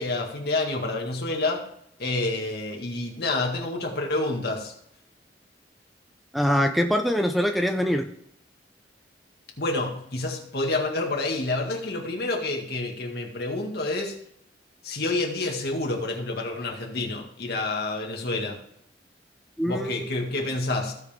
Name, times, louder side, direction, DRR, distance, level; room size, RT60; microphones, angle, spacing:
voice 1, 0.0-1.7 2.0-4.7 9.6-14.2 14.8-18.6 19.7-20.9, left 2 dB, 60° left, 1 dB, 2.0 m, -28 dB
voice 2, 6.3-8.1 19.6-19.9, equal, ahead, 5 dB, 0.5 m, -23 dB
16.0 x 5.4 x 3.6 m, 0.71 s
head